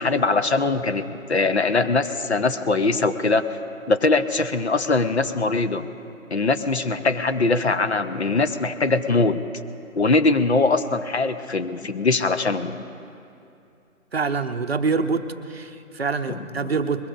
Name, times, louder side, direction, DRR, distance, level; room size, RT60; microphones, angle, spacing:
voice 1, 0.0-3.4 3.9-5.9 6.3-9.4 10.0-12.8 16.3-16.7, left 3 dB, 50° left, 10 dB, 0.8 m, -22 dB
voice 2, 14.1-17.1, right 4 dB, 45° right, 8 dB, 0.7 m, -25 dB
21.5 x 21.0 x 2.5 m, 2.6 s
figure-of-eight pair, 160°, 41 cm